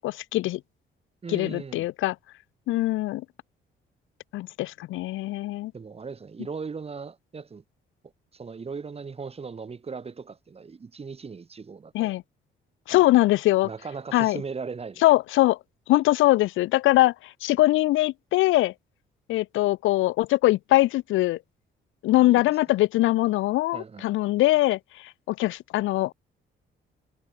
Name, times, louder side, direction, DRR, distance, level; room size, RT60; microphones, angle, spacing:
voice 1, 0.0-0.6 1.3-2.2 2.7-3.2 4.3-5.7 11.9-12.2 12.9-13.7 14.1-14.4 15.0-15.6 15.9-17.1 17.4-18.7 19.3-21.4 22.0-24.8 25.3-26.1, left 17 dB, 85° left, 0.6 m, -22 dB
voice 2, 1.2-1.9 5.7-7.6 8.3-12.1 12.9-13.3 13.6-15.0 22.1-22.7 23.7-24.0, right 5 dB, 30° right, 1.6 m, -38 dB
cardioid pair, 90°, 20 cm